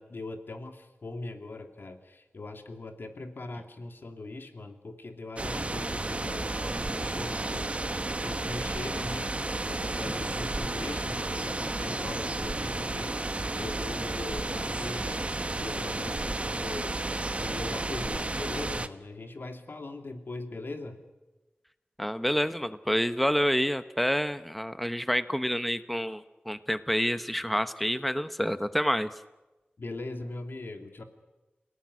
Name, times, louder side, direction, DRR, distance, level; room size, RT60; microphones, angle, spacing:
voice 1, 0.0-15.3 15.6-17.0 17.4-21.0 29.8-31.0, left 2 dB, 75° left, 6 dB, 2.6 m, -40 dB
sound 1, 5.4-18.9, right 2 dB, 35° right, 1.2 m, -32 dB
Piano, 7.3-11.8 12.8-13.6, right 3 dB, 60° right, 2.4 m, -56 dB
voice 2, 22.0-29.1, equal, ahead, 12 dB, 1.0 m, -28 dB
28.0 x 18.0 x 9.7 m, 1.1 s
wide cardioid pair, 75°, 4 cm